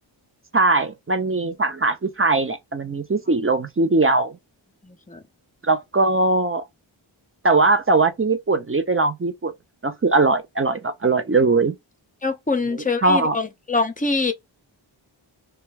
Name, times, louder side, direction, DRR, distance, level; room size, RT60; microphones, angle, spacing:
voice 1, 0.5-4.4 5.6-6.6 7.4-9.5 9.8-11.7 12.7-13.4, right 3 dB, 30° right, 0.4 m, -20 dB
voice 2, 4.8-5.2 12.2-14.3, left 3 dB, 20° left, 0.6 m, -24 dB
2.2 x 2.2 x 3.2 m
wide cardioid pair, 55°, 47 cm